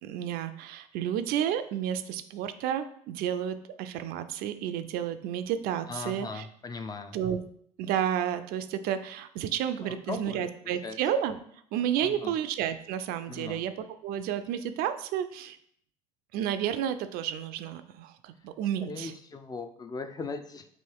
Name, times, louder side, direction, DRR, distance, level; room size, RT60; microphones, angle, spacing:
voice 1, 0.0-6.5 7.1-7.4 7.8-11.4 11.7-13.7 14.0-15.6 16.3-19.1, right 10 dB, 60° right, 10 dB, 0.4 m, -31 dB
voice 2, 5.9-7.2 9.8-10.5 10.8-11.0 12.0-12.3 13.3-13.6 18.9-20.7, left 4 dB, 20° left, 8 dB, 0.4 m, -38 dB
3.1 x 2.8 x 4.6 m, 0.66 s
supercardioid pair, 85°, 17 cm